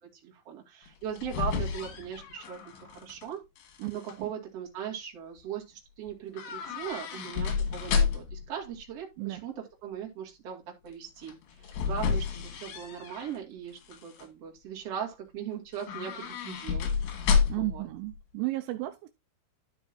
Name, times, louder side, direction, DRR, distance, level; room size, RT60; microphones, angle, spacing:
voice 1, 0.0-3.4 3.9-16.9 17.1-17.8, right 8 dB, 40° right, 2.9 m, -39 dB
sound 1, 0.9-3.3 3.6-4.1 6.3-8.5 11.2-13.4 13.8-14.3 15.7-17.8 18.1-18.2, left 6 dB, 90° left, 3.8 m, -30 dB
voice 2, 17.5-19.1, right 19 dB, 80° right, 2.8 m, -33 dB
12.5 x 5.4 x 2.7 m
omnidirectional pair, 5.1 m